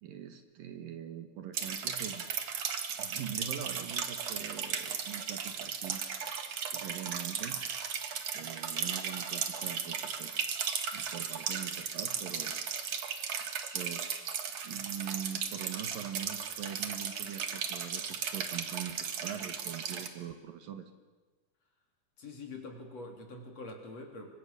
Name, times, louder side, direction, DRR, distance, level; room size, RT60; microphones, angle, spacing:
voice 1, 0.0-2.3 3.0-6.0 6.7-7.6 8.3-10.4 10.9-12.6 13.7-14.1 14.6-20.9, right 9 dB, 65° right, 8 dB, 2.9 m, -42 dB
sound 1, 1.5-20.1, right 7 dB, 50° right, 2.2 m, -36 dB
voice 2, 22.2-24.3, left 2 dB, 45° left, 2 dB, 4.0 m, -45 dB
29.0 x 24.5 x 6.8 m, 1.3 s
omnidirectional pair, 4.5 m